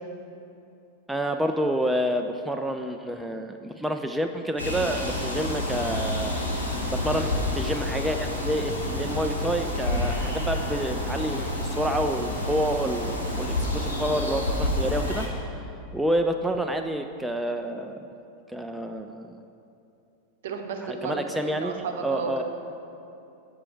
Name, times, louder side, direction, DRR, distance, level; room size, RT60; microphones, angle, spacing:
voice 1, 1.1-6.4 6.9-15.6 15.9-18.1 18.5-19.4 20.8-22.4, equal, 5° right, 5 dB, 0.3 m, -28 dB
sound 1, 4.6-15.3, left 1 dB, 80° left, 1.1 m, -29 dB
voice 2, 20.4-22.4, right 5 dB, 55° right, 4 dB, 0.7 m, -33 dB
7.6 x 5.5 x 4.6 m, 2.8 s
figure-of-eight pair, 90°, 0 cm